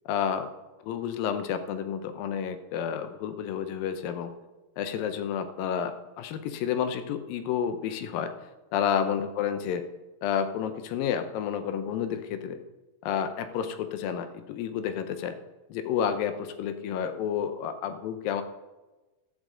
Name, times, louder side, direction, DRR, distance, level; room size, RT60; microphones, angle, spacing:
voice 1, 0.1-0.5 0.8-4.3 4.8-8.3 8.7-9.8 10.2-12.6 13.0-15.4 15.7-18.4, left 8 dB, 80° left, 9 dB, 2.5 m, -30 dB
14.0 x 12.5 x 3.8 m, 1.1 s
omnidirectional pair, 4.2 m